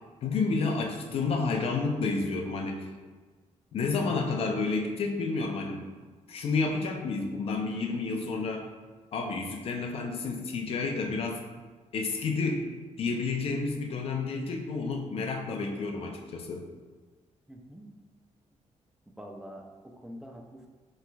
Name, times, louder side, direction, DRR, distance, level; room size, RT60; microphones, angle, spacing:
voice 1, 0.2-2.9 3.7-5.9 6.3-8.7 9.1-11.4 11.9-12.6 13.0-16.6, left 4 dB, 50° left, 2 dB, 0.5 m, -30 dB
voice 2, 17.5-17.9 19.2-20.7, equal, 5° right, 1 dB, 0.4 m, -45 dB
5.8 x 3.1 x 2.3 m, 1.3 s
wide cardioid pair, 160°, 12 cm